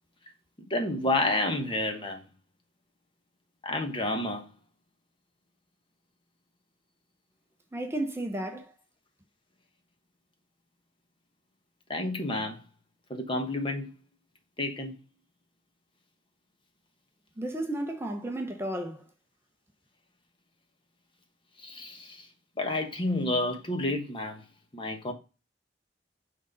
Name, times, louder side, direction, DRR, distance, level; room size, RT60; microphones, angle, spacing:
voice 1, 0.7-2.2 3.6-4.5 11.9-12.6 13.1-13.9 14.6-14.9 21.6-22.3 22.6-24.4 24.7-25.1, left 2 dB, 30° left, 1.1 m, -30 dB
voice 2, 7.7-8.7 17.4-19.1, right 1 dB, 15° right, 0.7 m, -33 dB
6.2 x 3.8 x 5.3 m
head